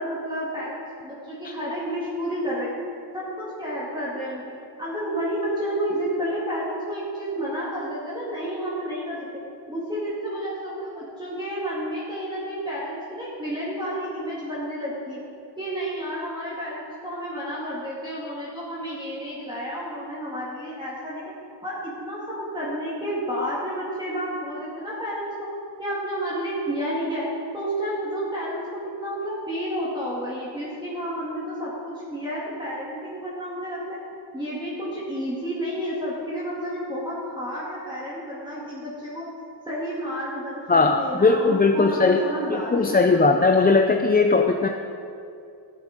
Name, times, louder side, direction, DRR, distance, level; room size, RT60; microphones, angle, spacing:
voice 1, 0.0-2.7 3.1-4.4 4.8-9.2 9.7-15.2 15.6-21.2 21.6-25.5 25.8-27.3 27.5-34.0 34.3-39.3 39.6-43.2, equal, 10° right, -8 dB, 2.0 m, -30 dB
voice 2, 40.7-42.2 42.5-44.7, left 3 dB, 20° left, 4 dB, 0.4 m, -19 dB
13.5 x 9.7 x 5.1 m, 2.5 s
wide cardioid pair, 165°, 43 cm